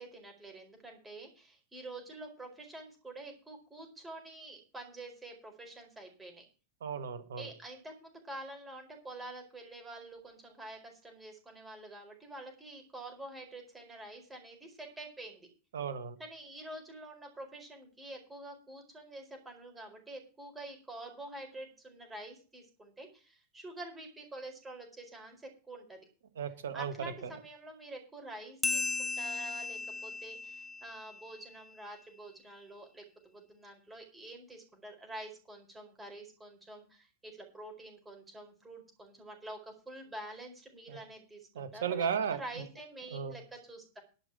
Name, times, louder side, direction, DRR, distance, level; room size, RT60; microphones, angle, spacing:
voice 1, 0.0-6.4 7.4-15.5 16.2-26.0 26.7-44.0, right 2 dB, 10° right, 2 dB, 4.5 m, -47 dB
voice 2, 6.8-7.5 15.7-16.1 26.4-27.3 40.9-41.0 41.5-42.6 43.1-43.3, right 7 dB, 60° right, 11 dB, 1.5 m, -35 dB
sound 1, 28.6-31.7, left 3 dB, 10° left, 0.4 m, -36 dB
11.5 x 5.6 x 8.7 m, 0.37 s
figure-of-eight pair, 90°, 0 cm